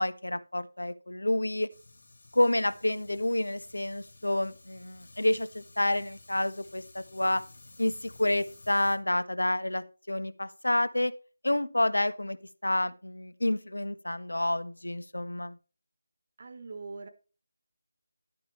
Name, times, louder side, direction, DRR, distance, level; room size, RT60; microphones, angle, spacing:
voice 1, 0.0-1.7 2.3-7.4 7.8-11.1 11.4-12.4 12.6-15.6, left 1 dB, 70° left, 14 dB, 1.2 m, -29 dB
Fire, 1.7-9.0, left 2 dB, 55° left, 2.2 m, -54 dB
voice 2, 16.4-17.1, right 4 dB, 40° right, 9 dB, 1.2 m, -42 dB
12.0 x 9.3 x 3.2 m, 0.34 s
figure-of-eight pair, 160°, 0 cm